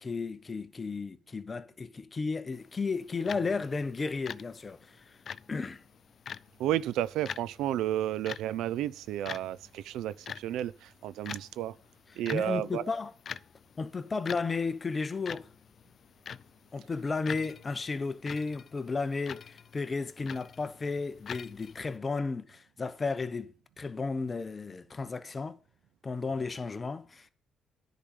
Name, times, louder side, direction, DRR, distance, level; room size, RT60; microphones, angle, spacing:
voice 1, 0.0-5.2 5.5-5.8 12.1-13.1 13.8-15.5 16.7-25.5 26.0-27.3, left 4 dB, 30° left, 0.9 m, -34 dB
sound 1, 2.5-22.0, left 7 dB, 55° left, 0.4 m, -46 dB
voice 2, 6.6-11.7 12.2-12.8, right 12 dB, 85° right, 0.4 m, -32 dB
10.0 x 5.2 x 6.7 m
cardioid pair, 90°, 0 cm